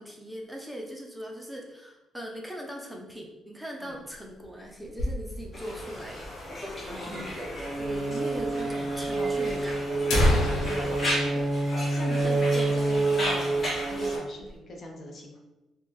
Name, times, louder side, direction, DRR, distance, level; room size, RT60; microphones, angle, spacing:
voice 1, 0.0-7.4 7.8-9.8 12.1-12.5, equal, 5° right, 0 dB, 0.4 m, -40 dB
sound 1, 3.9-5.7 6.0-6.1 6.3-6.4 7.1-7.2 8.1-8.3 8.6-8.7 9.4-9.5 9.9-12.5 12.8-12.9 13.3-13.6 14.0-14.6, left 1 dB, 80° left, 0.8 m, -29 dB
Conversation, 5.5-14.2, equal, 35° left, 1.3 m, -35 dB
voice 2, 6.9-7.3 9.2-9.8 10.3-11.5 11.9-15.4, left 1 dB, 50° left, 1 dB, 0.7 m, -41 dB
sound 2, 7.6-14.2, right 2 dB, 45° right, 0.6 m, -28 dB
3.4 x 2.1 x 3.0 m, 1.1 s
cardioid pair, 90°, 0 cm